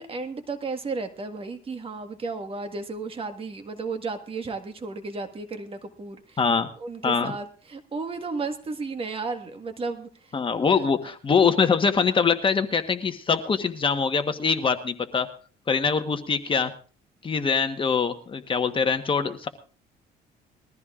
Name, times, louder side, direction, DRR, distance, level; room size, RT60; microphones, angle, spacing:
voice 1, 0.0-6.4 6.8-10.4 10.7-10.9, right 4 dB, 35° right, 7 dB, 1.6 m, -33 dB
voice 2, 6.4-6.7 7.0-7.3 10.3-15.3 15.7-16.7 17.2-19.5, left 5 dB, 30° left, 8 dB, 1.2 m, -23 dB
21.0 x 14.0 x 2.5 m, 0.38 s
cardioid pair, 110°, 17 cm